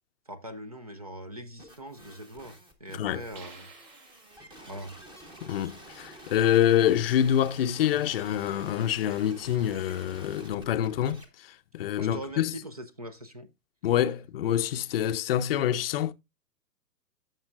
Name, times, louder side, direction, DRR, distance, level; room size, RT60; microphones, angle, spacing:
voice 1, 0.3-3.7 4.7-5.0 11.8-13.5, right 1 dB, 25° right, 0.3 m, -42 dB
sound 1, 1.6-11.2, equal, 10° right, 0.9 m, -49 dB
sound 2, 3.3-4.9, right 4 dB, 60° right, 4.4 m, -51 dB
voice 2, 5.4-12.5 13.8-16.1, left 10 dB, 35° left, 0.6 m, -26 dB
14.0 x 5.5 x 2.4 m
hypercardioid pair, 130°, 50 cm